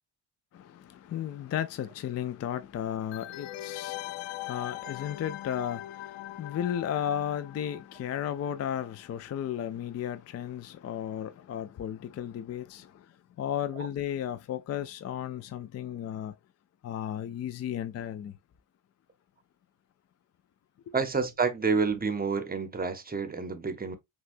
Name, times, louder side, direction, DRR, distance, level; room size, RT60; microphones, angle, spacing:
voice 1, 0.5-16.3 16.8-18.3 20.9-21.0, left 10 dB, 35° left, 0.4 m, -34 dB
sound 1, 3.1-8.6 8.8-8.9, left 15 dB, 85° left, 0.5 m, -41 dB
voice 2, 20.9-24.0, right 5 dB, 20° right, 0.8 m, -29 dB
6.1 x 2.3 x 2.5 m
cardioid pair, 105°, 47 cm